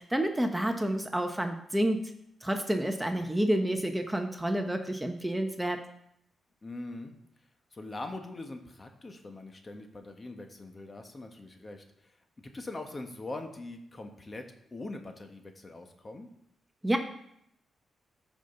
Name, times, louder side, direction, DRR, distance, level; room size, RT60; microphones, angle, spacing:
voice 1, 0.0-2.0 2.4-5.8 16.8-17.0, right 1 dB, 10° right, 5 dB, 0.9 m, -29 dB
voice 2, 6.6-7.1 7.7-11.8 12.4-14.4 14.7-16.3, left 2 dB, 35° left, 5 dB, 1.4 m, -42 dB
13.5 x 5.2 x 3.9 m, 0.75 s
cardioid pair, 60°, 0 cm